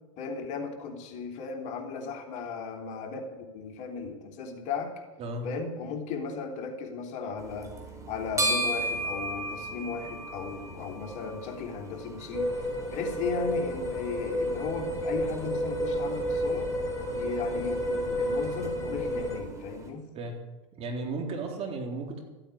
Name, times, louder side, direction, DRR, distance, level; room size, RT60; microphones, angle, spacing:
voice 1, 0.2-4.9 5.4-7.7 8.1-16.7 17.1-20.1, left 5 dB, 50° left, 2 dB, 3.4 m, -36 dB
sound 1, 7.4-19.9, right 1 dB, 20° right, 4.4 m, -37 dB
sound 2, 12.3-19.4, equal, 20° left, 7.1 m, -31 dB
voice 2, 20.1-20.5 20.8-22.2, right 3 dB, 40° right, 2 dB, 3.9 m, -34 dB
14.5 x 9.1 x 9.9 m, 1.1 s
hypercardioid pair, 105°, 16 cm